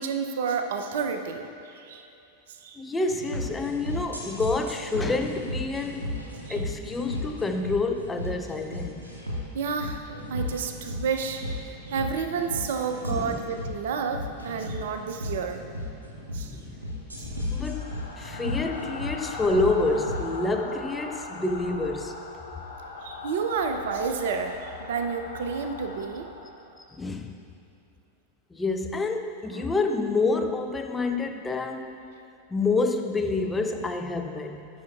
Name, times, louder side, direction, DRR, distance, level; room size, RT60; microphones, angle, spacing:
voice 1, 0.0-2.1 2.6-2.8 6.5-6.6 9.5-15.6 16.3-16.6 17.2-17.3 23.0-26.3 29.5-29.8, right 5 dB, 55° right, 6 dB, 0.5 m, -30 dB
voice 2, 2.8-6.2 6.5-9.1 13.1-13.4 16.4-16.7 17.5-22.2 26.9-27.3 28.5-32.0 32.5-34.7, left 3 dB, 10° left, 4 dB, 0.5 m, -28 dB
sound 1, 3.1-20.2, left 1 dB, 80° right, 1.2 m, -35 dB
sound 2, 16.8-26.8, left 3 dB, 70° left, 0.9 m, -39 dB
13.5 x 6.2 x 2.4 m, 2.7 s
figure-of-eight pair, 90°, 0 cm